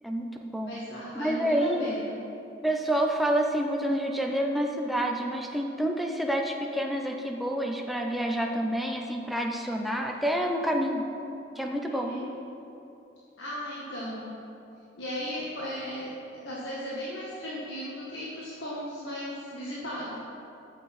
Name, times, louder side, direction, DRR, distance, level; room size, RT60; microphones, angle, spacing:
voice 1, 0.0-0.7 1.1-1.9 2.6-11.1 11.6-12.1, equal, ahead, 1 dB, 0.6 m, -28 dB
voice 2, 0.7-2.1 11.8-12.3 13.4-14.3 15.0-16.1 16.4-20.2, equal, 80° left, -7 dB, 1.6 m, -36 dB
13.0 x 6.7 x 4.2 m, 2.8 s
head